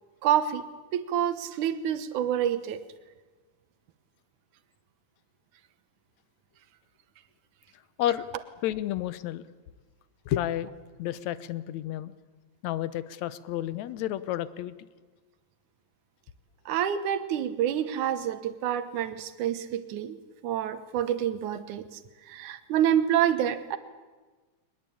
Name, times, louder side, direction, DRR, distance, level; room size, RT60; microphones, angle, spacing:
voice 1, 0.2-0.6 0.9-2.8 16.7-20.2 20.4-21.9 22.3-23.8, right 10 dB, 85° right, 12 dB, 2.6 m, -27 dB
voice 2, 8.6-9.4 10.3-10.7 11.0-12.1 12.6-14.7, left 13 dB, 75° left, 16 dB, 2.1 m, -31 dB
22.0 x 20.5 x 8.6 m, 1.3 s
omnidirectional pair, 3.4 m